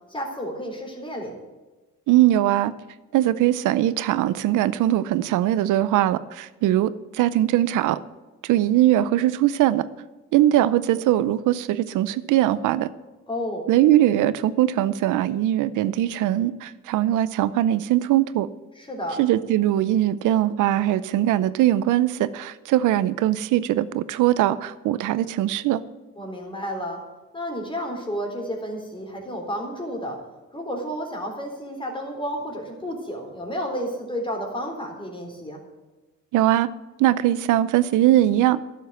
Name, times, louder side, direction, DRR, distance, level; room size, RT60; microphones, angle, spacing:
voice 1, 0.1-1.4 13.3-13.7 18.8-19.2 26.2-27.0 27.3-30.2 30.5-35.6, equal, 15° left, 2 dB, 3.8 m, -31 dB
voice 2, 2.1-2.7 3.1-8.0 8.4-9.8 10.3-12.9 13.7-18.5 19.2-25.8 36.3-36.7 37.0-38.6, right 13 dB, 90° right, 16 dB, 0.7 m, -21 dB
11.5 x 7.4 x 8.0 m, 1.2 s
cardioid pair, 90°, 30 cm